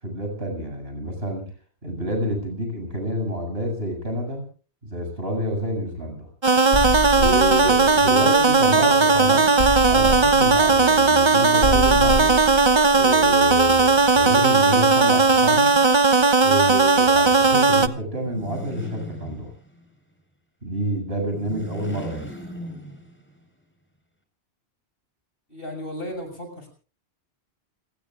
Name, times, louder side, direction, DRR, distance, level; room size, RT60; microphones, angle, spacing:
voice 1, 0.0-1.5 1.8-4.5 4.8-6.3 7.1-9.5 9.9-12.4 12.9-15.8 16.4-19.5 20.6-22.2, equal, 70° right, 4 dB, 8.0 m, -29 dB
sound 1, 6.4-17.9, right 4 dB, 30° right, 0.8 m, -17 dB
sound 2, 6.7-9.1 9.6-14.2, left 1 dB, 80° left, 3.4 m, -29 dB
sound 3, 18.1-19.9 21.2-23.4, equal, 10° left, 5.1 m, -38 dB
voice 2, 25.5-26.7, equal, 60° left, 5 dB, 7.0 m, -34 dB
29.0 x 19.5 x 2.5 m, 0.39 s
omnidirectional pair, 1.1 m